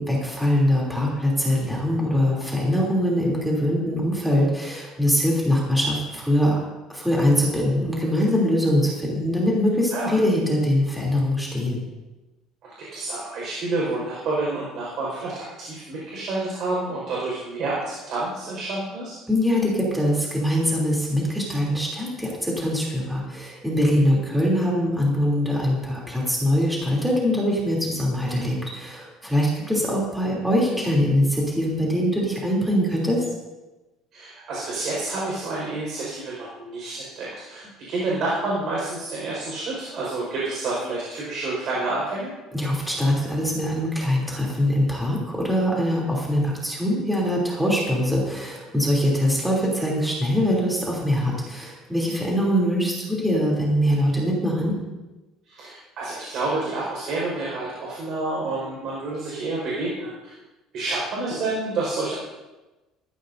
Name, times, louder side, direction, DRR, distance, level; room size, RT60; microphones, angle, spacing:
voice 1, 0.0-6.6 6.9-11.8 19.3-33.2 42.5-54.7, equal, ahead, -4 dB, 3.2 m, -23 dB
voice 2, 12.6-19.1 34.1-37.6 37.9-42.3 55.5-60.1 60.7-62.1, right 2 dB, 45° right, -5 dB, 5.1 m, -29 dB
19.5 x 14.5 x 2.7 m, 1.1 s
cardioid pair, 165°, 0 cm